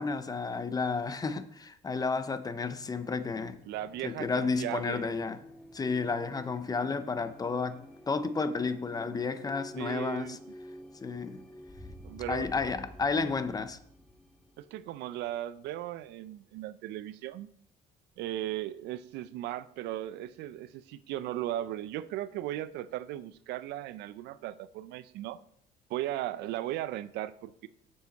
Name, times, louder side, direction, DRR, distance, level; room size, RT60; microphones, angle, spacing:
voice 1, 0.0-3.5 4.0-5.4 5.7-10.4 11.0-11.4 12.3-13.8, left 4 dB, 20° left, 0.6 m, -32 dB
sound 1, 2.5-15.9, left 1 dB, 5° left, 1.3 m, -50 dB
voice 2, 3.7-5.1 9.8-10.4 12.0-12.5 14.6-17.5 18.2-25.4 25.9-27.7, right 13 dB, 80° right, 0.4 m, -37 dB
7.0 x 6.6 x 4.1 m
cardioid pair, 110°, 17 cm